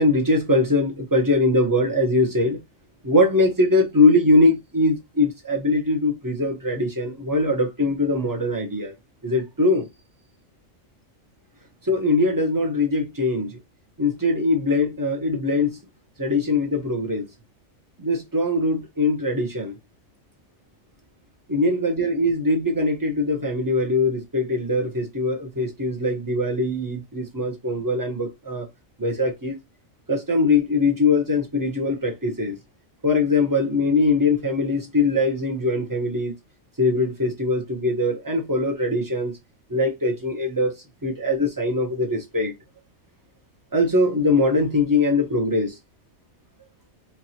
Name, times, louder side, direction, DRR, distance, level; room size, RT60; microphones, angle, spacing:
voice 1, 0.0-2.6 3.0-8.9 9.2-9.9 11.8-13.6 14.0-15.8 16.2-17.2 18.0-19.7 21.5-28.6 29.0-29.5 30.1-32.5 33.0-36.3 36.8-39.3 39.7-40.8 41.0-42.5 43.7-45.7, left 2 dB, 20° right, 0.8 m, -22 dB
4.5 x 2.6 x 2.8 m
omnidirectional pair, 1.4 m